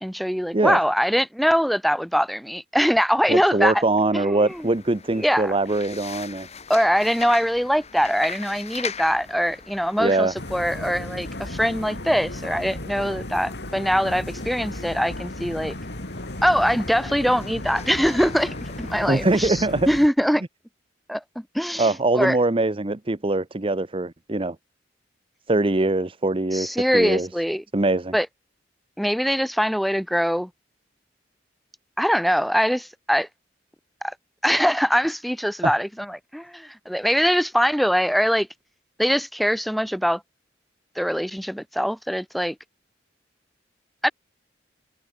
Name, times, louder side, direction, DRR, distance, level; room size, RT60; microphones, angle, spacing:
voice 1, 0.0-3.8 4.1-4.7 5.2-5.5 6.7-15.7 16.4-20.4 21.1-22.4 26.5-27.6 28.1-28.3 29.0-30.5 32.0-33.3 34.0-34.1 34.4-38.5 39.0-40.2 41.0-42.6 44.0-44.1, equal, ahead, 2.6 m, -23 dB
voice 2, 3.3-6.5 10.0-10.3 19.1-19.9 21.8-24.6 25.5-27.3 27.7-28.1 35.6-35.7, right 2 dB, 30° right, 0.9 m, -22 dB
sound 1, 4.5-19.3, left 6 dB, 35° left, 3.7 m, -41 dB
sound 2, 10.3-20.1, left 1 dB, 65° left, 4.0 m, -35 dB
head